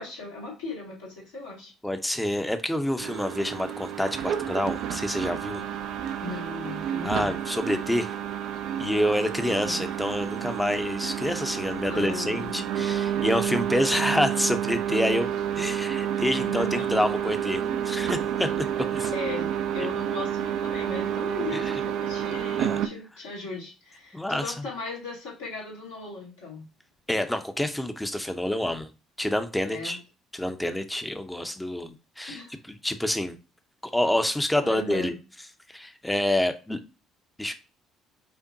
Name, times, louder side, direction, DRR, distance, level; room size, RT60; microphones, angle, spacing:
voice 1, 0.0-1.7 6.2-7.3 9.5-9.8 11.9-12.8 16.3-17.0 19.1-26.6 29.7-30.0 32.3-32.5 34.6-35.2, left 3 dB, 80° left, -6 dB, 2.0 m, -38 dB
voice 2, 1.8-5.6 7.0-8.1 8.8-18.6 18.9-19.1 21.5-21.7 22.6-22.8 24.1-24.5 27.1-28.9 29.2-30.0 30.3-32.4 32.7-33.4 33.9-35.1 35.7-36.8 37.4-37.5, left 1 dB, 5° left, 8 dB, 0.7 m, -27 dB
sound 1, 3.0-22.9, right 9 dB, 60° right, 0.4 m, -30 dB
5.5 x 2.1 x 2.7 m, 0.32 s
figure-of-eight pair, 55°, 0 cm